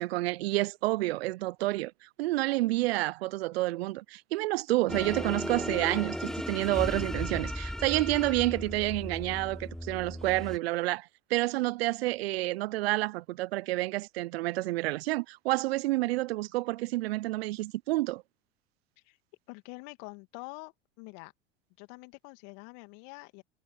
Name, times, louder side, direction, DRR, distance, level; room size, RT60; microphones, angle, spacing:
voice 1, 0.0-18.2, right 19 dB, 65° right, 0.6 m, -29 dB
sound 1, 4.9-10.6, equal, ahead, 3.2 m, -36 dB
voice 2, 19.5-21.3 21.8-23.4, left 30 dB, 55° left, 2.5 m, -46 dB
hypercardioid pair, 85°, 33 cm